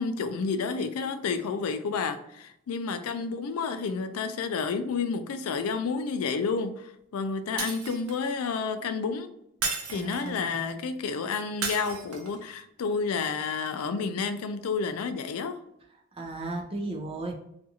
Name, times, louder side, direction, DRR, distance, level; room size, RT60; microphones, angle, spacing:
voice 1, 0.0-9.3 9.9-15.6, left 5 dB, 90° left, 0.3 m, -30 dB
Shatter, 7.6-8.3 9.6-10.4 11.6-12.4, right 4 dB, 80° right, 0.6 m, -33 dB
voice 2, 10.0-10.6 16.1-17.3, right 2 dB, 25° right, 0.4 m, -35 dB
2.6 x 2.3 x 2.7 m
head